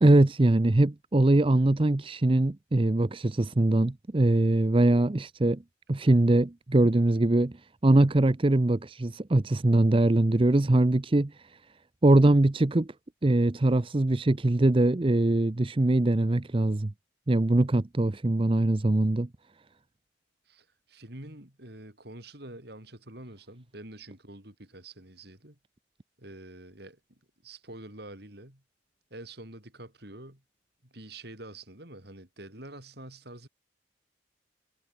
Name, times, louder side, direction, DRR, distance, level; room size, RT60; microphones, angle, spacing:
voice 1, 0.0-5.6 5.9-7.5 7.8-11.4 12.0-12.9 13.2-16.9 17.3-19.3, right 2 dB, 30° right, 0.6 m, -22 dB
voice 2, 20.5-25.6 26.2-28.6 29.1-30.4 30.8-33.5, right 1 dB, 60° right, 5.1 m, -46 dB
head